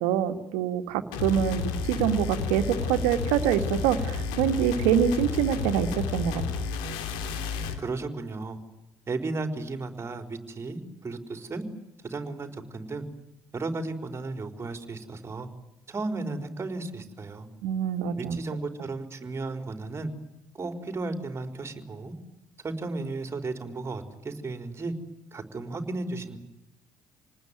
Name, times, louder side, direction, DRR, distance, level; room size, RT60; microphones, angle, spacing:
voice 1, 0.0-6.4 17.6-18.4, right 9 dB, 75° right, 8 dB, 2.2 m, -25 dB
sound 1, 1.1-7.8, left 5 dB, 70° left, 3.1 m, -31 dB
voice 2, 7.8-8.6 9.1-11.7 12.0-13.0 13.5-15.5 15.9-17.5 18.2-20.1 20.5-22.1 22.6-24.9 25.3-26.4, right 3 dB, 30° right, 7 dB, 4.5 m, -34 dB
28.0 x 20.0 x 9.4 m, 0.88 s
hypercardioid pair, 60°, 9 cm